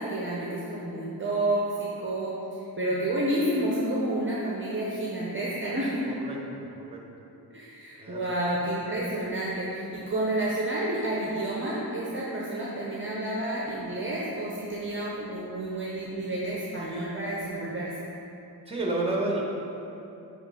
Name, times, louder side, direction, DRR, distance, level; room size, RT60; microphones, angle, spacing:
voice 1, 0.0-2.3 2.8-6.0 7.5-18.1, right 1 dB, 30° right, -5 dB, 0.8 m, -30 dB
voice 2, 6.1-6.4 6.9-7.0 8.0-8.2 18.7-19.4, right 2 dB, 15° right, -2 dB, 1.1 m, -29 dB
8.7 x 3.1 x 4.2 m, 2.9 s
wide cardioid pair, 110°, 39 cm